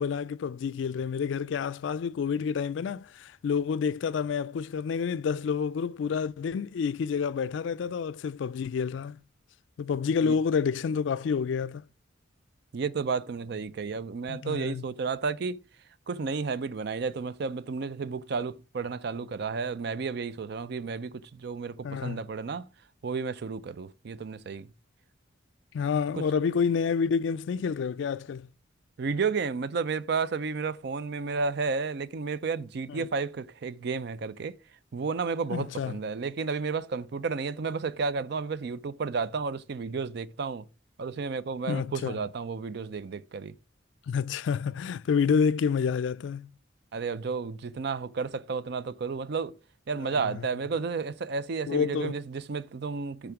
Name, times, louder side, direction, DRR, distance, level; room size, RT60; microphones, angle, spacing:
voice 1, 0.0-9.2 9.8-11.8 14.3-14.9 21.8-22.2 25.7-28.5 32.9-33.1 35.5-36.0 41.7-42.2 44.1-46.5 50.0-50.4 51.7-52.1, left 6 dB, 70° left, 0.3 m, -29 dB
voice 2, 12.7-15.6 16.1-22.7 23.0-24.7 26.1-26.2 29.0-34.6 34.9-40.7 41.0-43.5 46.9-49.5 49.9-53.3, right 5 dB, 55° right, 0.4 m, -32 dB
8.5 x 3.6 x 5.9 m
head